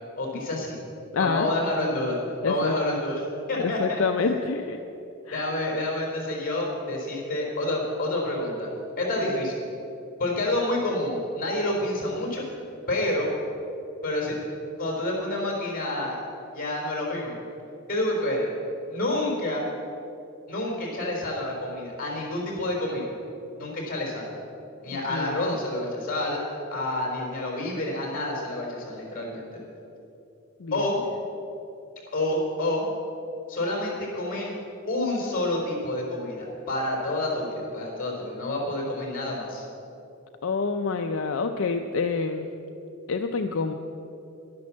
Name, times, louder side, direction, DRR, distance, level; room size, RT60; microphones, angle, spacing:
voice 1, 0.2-0.8 1.2-2.2 2.5-4.0 5.3-8.7 9.0-9.7 10.2-12.4 12.9-13.3 14.0-14.4 14.8-16.2 16.5-17.3 17.9-18.5 18.9-19.7 20.5-23.0 23.6-24.3 24.8-26.4 26.7-29.5 30.7-31.0 32.1-32.8 33.5-34.5 34.9-39.6, left 1 dB, 45° left, -1 dB, 3.9 m, -28 dB
voice 2, 1.1-1.5 2.4-2.7 3.6-4.8 5.3-5.5 9.2-9.3 25.1-25.6 30.6-30.8 40.4-42.5 43.1-43.7, left 4 dB, 75° left, 5 dB, 0.5 m, -27 dB
11.0 x 10.5 x 7.4 m, 2.9 s
head